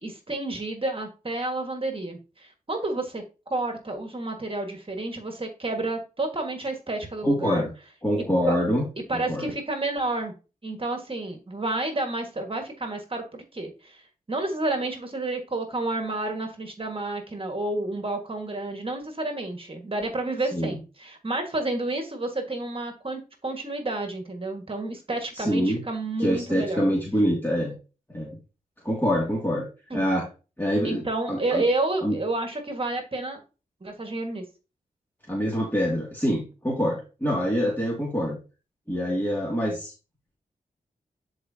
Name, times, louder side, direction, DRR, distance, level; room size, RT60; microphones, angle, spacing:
voice 1, 0.0-3.2 3.5-7.7 8.5-8.6 9.1-10.3 10.6-26.8 29.9-30.0 30.8-33.4 33.8-34.4, right 2 dB, 35° right, 4 dB, 1.8 m, -30 dB
voice 2, 7.2-7.7 8.0-8.8 9.3-9.5 20.5-20.7 25.3-25.8 26.2-27.8 28.1-28.4 28.8-29.7 29.9-30.3 30.6-31.6 32.0-32.2 35.3-38.4 38.9-39.9, equal, 15° left, -2 dB, 2.5 m, -25 dB
9.9 x 4.6 x 2.8 m, 0.32 s
cardioid pair, 45°, 16 cm